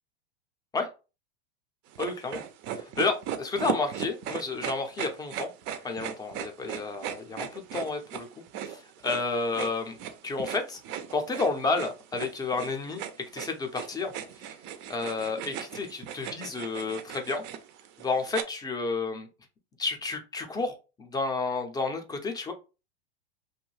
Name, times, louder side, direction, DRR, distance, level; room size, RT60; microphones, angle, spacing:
sound 1, 1.9-18.4, right 9 dB, 35° right, 0.5 m, -37 dB
voice 1, 2.0-2.4 2.7-5.5 5.8-8.3 8.6-10.0 10.2-10.8 11.1-13.0 13.3-14.1 14.4-14.5 14.9-17.4 18.0-19.3 19.8-22.5, left 3 dB, 10° left, 5 dB, 0.5 m, -31 dB
2.6 x 2.2 x 3.1 m, 0.30 s
hypercardioid pair, 120°, 32 cm